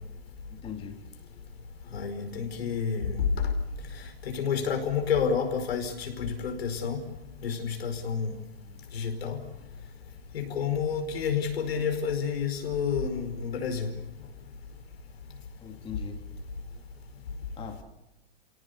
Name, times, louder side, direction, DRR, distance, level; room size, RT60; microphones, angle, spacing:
voice 1, 0.5-1.0 15.6-16.2 17.6-17.8, left 7 dB, 15° left, 3 dB, 2.3 m, -40 dB
voice 2, 1.9-3.5 4.2-7.0 7.4-8.3 8.9-9.4 10.3-13.9, left 6 dB, 80° left, 5 dB, 5.1 m, -29 dB
28.0 x 18.0 x 8.3 m, 0.97 s
hypercardioid pair, 145°, 30 cm